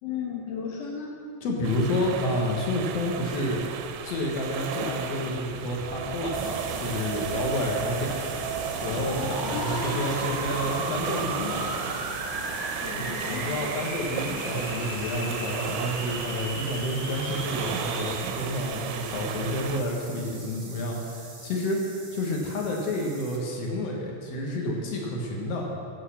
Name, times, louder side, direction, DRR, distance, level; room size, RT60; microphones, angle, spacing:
voice 1, 0.0-1.2 9.5-10.1 12.8-13.8, left 5 dB, 80° left, -3 dB, 1.4 m, -34 dB
voice 2, 1.4-3.6 4.0-8.2 8.6-11.6 12.9-21.8 22.1-25.7, left 1 dB, 65° left, -1 dB, 1.6 m, -30 dB
sound 1, 1.6-19.8, right 8 dB, 90° right, 3.0 m, -35 dB
sound 2, 5.9-18.2, right 2 dB, 35° right, 0.8 m, -35 dB
sound 3, 6.3-23.4, right 3 dB, 65° right, 0.7 m, -44 dB
15.0 x 7.8 x 6.0 m, 2.3 s
omnidirectional pair, 5.3 m